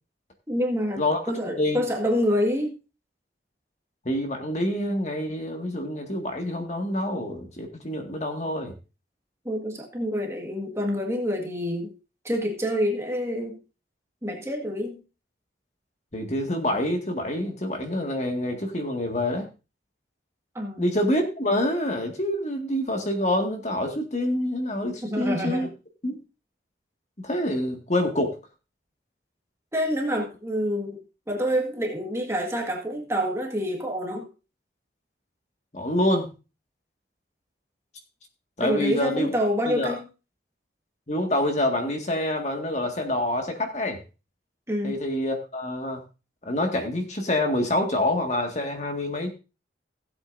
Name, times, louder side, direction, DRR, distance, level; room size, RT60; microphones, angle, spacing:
voice 1, 0.5-2.8 9.4-12.0 12.2-13.6 14.2-15.0 20.5-20.9 25.0-25.7 29.7-31.0 31.3-34.3 38.6-40.1 44.7-45.0, equal, 15° right, 2 dB, 1.7 m, -27 dB
voice 2, 1.4-1.8 4.1-8.7 16.1-19.5 20.8-25.7 26.0-26.2 27.2-28.4 35.7-36.3 38.6-39.3 39.7-39.9 41.1-44.0 44.8-46.0 46.4-49.3, left 1 dB, 40° left, 3 dB, 1.9 m, -26 dB
16.5 x 8.0 x 2.6 m, 0.30 s
head